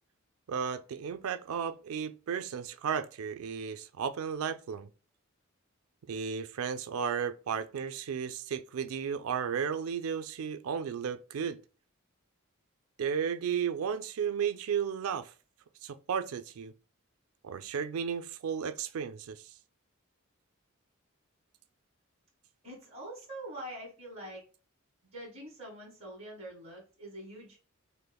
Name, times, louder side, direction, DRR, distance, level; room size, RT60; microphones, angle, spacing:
voice 1, 0.5-4.9 6.1-11.6 13.0-15.3 15.8-16.7 17.4-19.5, right 7 dB, 80° right, 0.4 m, -34 dB
voice 2, 22.6-24.4 25.1-27.6, right 1 dB, 30° right, 1.6 m, -44 dB
5.3 x 2.0 x 2.2 m
head